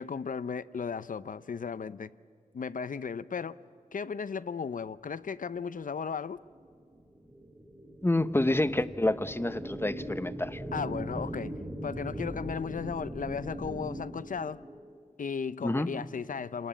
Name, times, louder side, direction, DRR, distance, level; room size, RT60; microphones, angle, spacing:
voice 1, 0.0-2.1 2.5-3.6 3.9-6.4 10.7-14.6 15.2-16.7, left 6 dB, 75° left, 0.6 m, -35 dB
sound 1, 6.2-15.0, right 1 dB, 10° right, 2.3 m, -40 dB
voice 2, 8.0-10.6 15.6-15.9, left 1 dB, 15° left, 0.8 m, -28 dB
28.5 x 20.0 x 8.8 m
wide cardioid pair, 95°, 14 cm